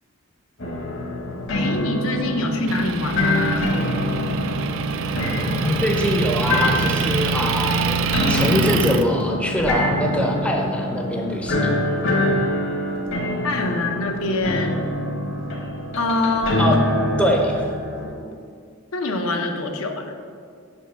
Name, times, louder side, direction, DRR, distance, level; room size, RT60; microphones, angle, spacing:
sound 1, 0.6-18.1, left 1 dB, 60° left, 1.0 m, -25 dB
voice 1, 1.5-3.7 13.4-14.8 15.9-16.6 18.9-20.1, left 2 dB, 80° left, 4 dB, 0.6 m, -24 dB
Motor vehicle (road) / Engine, 2.7-9.0, right 6 dB, 65° right, 0.3 m, -25 dB
voice 2, 5.4-11.8 16.6-16.8 17.2-17.6, left 1 dB, 5° left, 1 dB, 0.5 m, -23 dB
5.5 x 4.6 x 5.1 m, 2.2 s
head